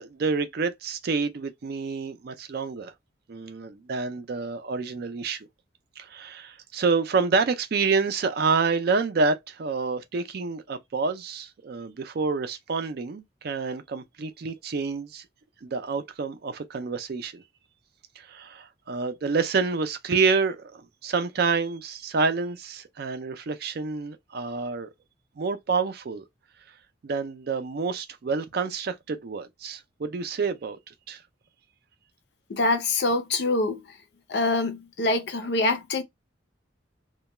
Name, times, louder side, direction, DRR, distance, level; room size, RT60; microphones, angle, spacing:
voice 1, 0.0-2.9 3.3-5.5 6.0-15.2 15.6-17.4 18.3-24.9 25.4-26.2 27.0-30.8 31.1-31.2, right 4 dB, 55° right, 0.4 m, -28 dB
voice 2, 32.5-34.0 34.3-36.0, left 2 dB, 55° left, 0.5 m, -25 dB
2.2 x 2.2 x 2.9 m
head